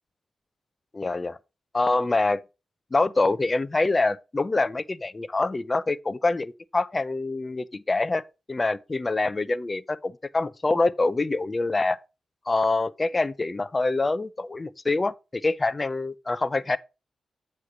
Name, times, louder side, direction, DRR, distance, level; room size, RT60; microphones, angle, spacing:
voice 1, 0.9-1.4 1.7-2.4 2.9-8.2 8.5-12.0 12.5-16.8, left 3 dB, 35° left, 0.6 m, -25 dB
8.1 x 3.2 x 6.1 m
supercardioid pair, 50°, 0 cm